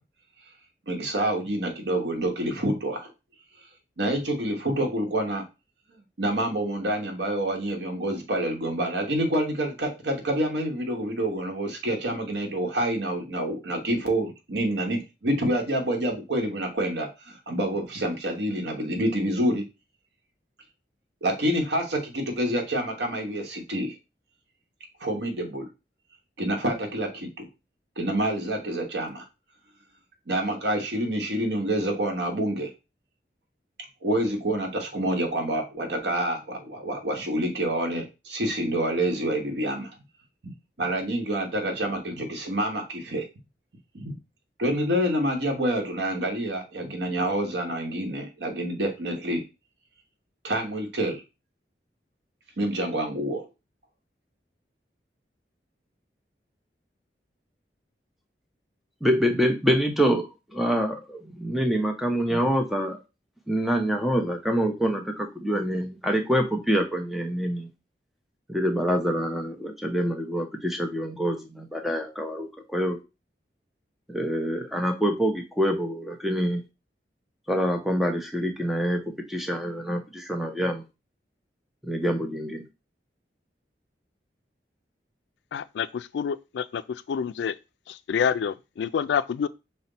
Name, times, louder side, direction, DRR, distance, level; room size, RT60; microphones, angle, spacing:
voice 1, 0.9-3.1 4.0-5.4 6.2-19.6 21.2-23.9 25.0-25.7 26.4-27.5 28.0-29.2 30.3-32.7 34.0-39.9 40.8-43.2 43.9-44.2 44.6-49.4 50.4-51.2 52.6-53.4, right 1 dB, 85° right, 1.1 m, -27 dB
voice 2, 59.0-63.0 63.5-67.7 68.5-73.0 74.1-76.6 77.5-79.0 79.3-80.8 81.8-82.6, equal, ahead, 0.6 m, -26 dB
voice 3, 85.5-86.8 87.1-87.5 87.9-89.5, left 7 dB, 80° left, 0.3 m, -27 dB
5.6 x 2.1 x 3.9 m
head